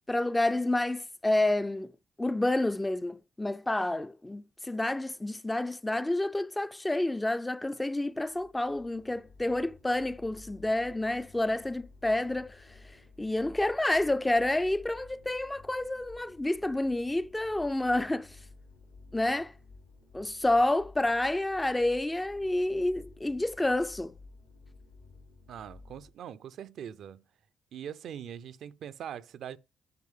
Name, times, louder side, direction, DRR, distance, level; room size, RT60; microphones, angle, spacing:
voice 1, 0.1-1.9 2.2-12.7 13.2-18.4 19.1-19.5 20.1-24.1, left 1 dB, 10° left, 0.3 m, -29 dB
sound 1, 8.1-26.1, left 3 dB, 85° left, 2.8 m, -54 dB
voice 2, 25.5-27.2 27.7-29.6, right 9 dB, 70° right, 0.5 m, -42 dB
9.6 x 4.7 x 3.6 m
cardioid pair, 90°, 0 cm